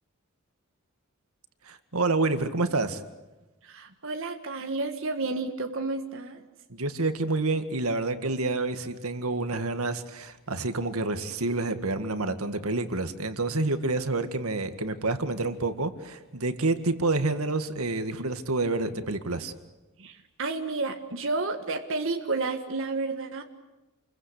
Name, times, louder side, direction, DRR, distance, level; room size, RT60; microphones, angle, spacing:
voice 1, 1.7-3.0 6.7-19.5, right 3 dB, 80° right, 9 dB, 2.0 m, -28 dB
voice 2, 3.6-6.4 20.0-23.4, right 3 dB, 60° right, 5 dB, 1.7 m, -31 dB
28.5 x 22.5 x 8.4 m, 1.1 s
head